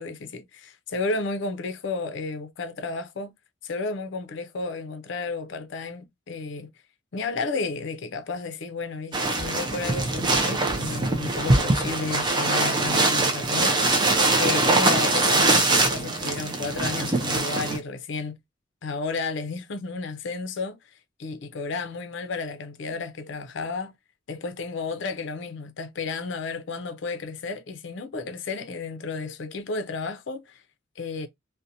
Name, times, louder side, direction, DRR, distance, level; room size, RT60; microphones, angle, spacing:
voice 1, 0.0-3.3 3.6-6.7 7.1-14.1 14.4-18.4 18.8-20.8 21.2-23.9 24.3-30.6 31.0-31.3, left 4 dB, 60° left, 0.5 m, -32 dB
sound 1, 9.1-17.8, right 2 dB, 20° right, 0.4 m, -23 dB
2.7 x 2.1 x 2.5 m
head